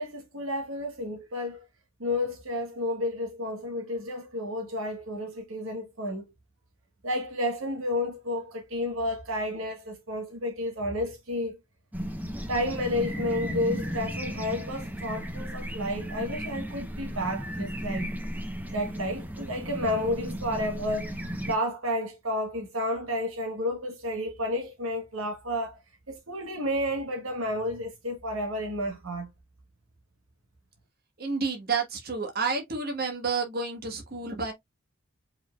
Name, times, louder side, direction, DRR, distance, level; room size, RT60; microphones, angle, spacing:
voice 1, 0.0-1.6 2.0-6.2 7.0-11.6 12.5-18.1 18.7-21.1 21.5-25.8 26.1-29.3, left 1 dB, 70° right, 1.3 m, -31 dB
sound 1, 11.9-21.6, equal, 10° right, 0.9 m, -35 dB
voice 2, 31.2-34.5, right 4 dB, 45° right, 1.5 m, -30 dB
5.0 x 3.9 x 2.4 m
head